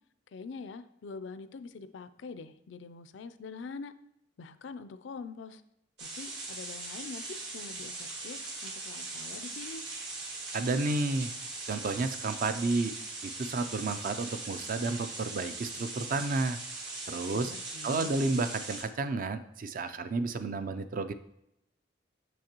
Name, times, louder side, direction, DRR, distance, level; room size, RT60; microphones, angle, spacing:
voice 1, 0.3-3.9 4.4-5.6 6.0-9.8 17.3-18.1, left 4 dB, 75° left, 0.4 m, -44 dB
sound 1, 6.0-18.8, right 3 dB, 65° right, 1.5 m, -40 dB
voice 2, 10.5-11.3 11.7-12.9 13.4-16.6 17.1-17.5 17.8-21.1, right 3 dB, 50° right, 0.4 m, -31 dB
6.6 x 6.2 x 2.9 m
head